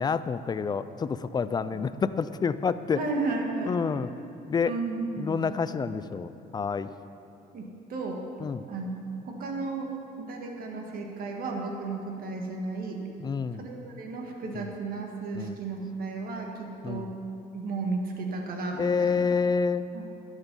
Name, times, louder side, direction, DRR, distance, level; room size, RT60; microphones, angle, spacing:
voice 1, 0.0-3.0 3.7-4.1 4.5-4.8 5.2-6.9 8.4-8.7 13.2-13.6 14.5-14.7 15.3-15.6 16.8-17.1 18.8-19.9, left 5 dB, 25° left, 14 dB, 0.4 m, -28 dB
voice 2, 3.0-3.9 4.7-5.4 7.5-8.2 8.7-8.9 9.3-9.9 10.2-13.0 13.5-17.1 17.5-19.2 19.9-20.0, right 3 dB, 60° right, 1 dB, 1.8 m, -33 dB
12.5 x 8.2 x 5.4 m, 2.8 s
cardioid pair, 110°, 17 cm